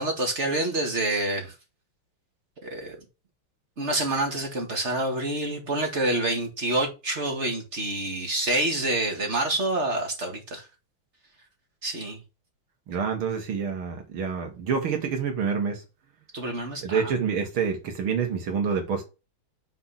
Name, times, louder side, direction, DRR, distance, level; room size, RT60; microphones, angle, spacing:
voice 1, 0.0-1.5 2.6-3.0 3.8-10.6 11.8-12.2 16.3-17.1, right 2 dB, 35° right, 2.1 m, -27 dB
voice 2, 12.9-15.8 16.8-19.0, right 6 dB, 75° right, 2.5 m, -27 dB
5.9 x 4.4 x 5.7 m
omnidirectional pair, 2.4 m